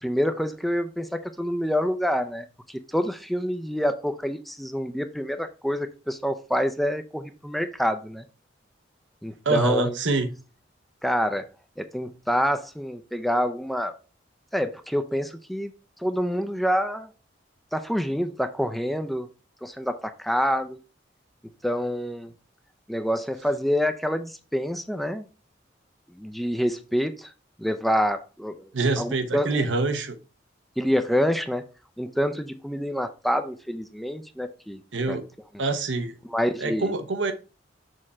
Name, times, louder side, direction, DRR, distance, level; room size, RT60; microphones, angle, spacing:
voice 1, 0.0-8.2 9.2-10.0 11.0-11.5 11.8-13.9 14.5-15.7 16.0-17.1 17.7-19.3 19.6-20.8 21.6-22.3 22.9-25.3 26.1-27.3 27.6-28.7 29.0-29.7 30.8-31.7 32.0-34.8 35.1-35.2 36.2-36.9, equal, ahead, 0.4 m, -27 dB
voice 2, 9.4-10.3 28.7-30.2 34.9-35.2 35.6-36.1 36.6-37.3, right 3 dB, 90° right, 0.9 m, -25 dB
6.5 x 3.7 x 4.2 m
head